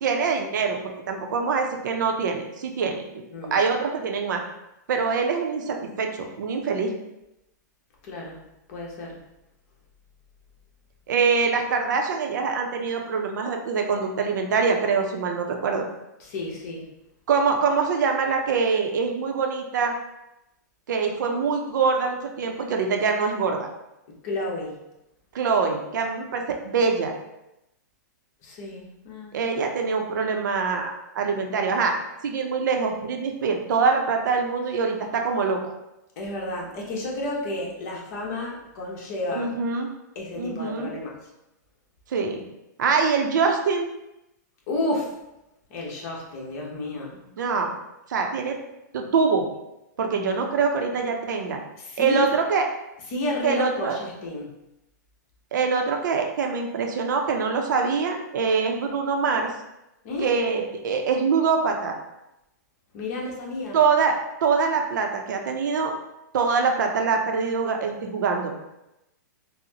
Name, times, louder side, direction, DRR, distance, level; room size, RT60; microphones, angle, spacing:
voice 1, 0.0-3.2 3.5-4.4 4.9-6.9 11.1-15.8 17.3-19.9 20.9-23.7 25.3-27.1 29.3-32.0 32.2-35.6 39.3-39.9 40.4-40.9 42.1-42.4 42.8-43.9 47.4-47.7 48.1-48.6 48.9-49.5 50.0-51.6 52.0-52.7 53.4-54.0 55.5-59.5 60.2-62.0 63.7-65.9 66.3-68.5, right 5 dB, 75° right, 3 dB, 0.5 m, -24 dB
voice 2, 8.0-8.4 8.7-9.2 16.2-16.9 24.2-24.8 28.4-29.4 36.2-39.5 40.1-41.2 44.7-45.1 45.7-47.1 51.8-52.3 53.1-54.5 60.0-60.3 62.9-63.8, left 2 dB, 50° left, -2 dB, 0.9 m, -31 dB
4.0 x 2.0 x 2.8 m, 0.91 s
hypercardioid pair, 140°, 10 cm